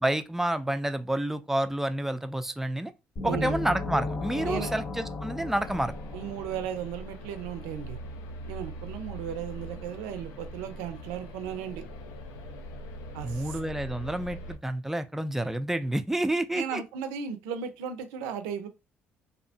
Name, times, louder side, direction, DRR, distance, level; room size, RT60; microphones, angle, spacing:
voice 1, 0.0-2.9 3.2-5.9 13.2-16.8, right 1 dB, 5° right, 0.4 m, -29 dB
sound 1, 3.2-6.9, left 3 dB, 55° left, 0.7 m, -35 dB
voice 2, 3.2-3.6 4.4-4.7 6.1-8.0 8.5-11.8 13.1-13.6 16.5-18.7, right 8 dB, 90° right, 0.4 m, -36 dB
sound 2, 5.6-14.6, equal, 85° left, 0.4 m, -42 dB
2.7 x 2.1 x 2.7 m
supercardioid pair, 70°, 5 cm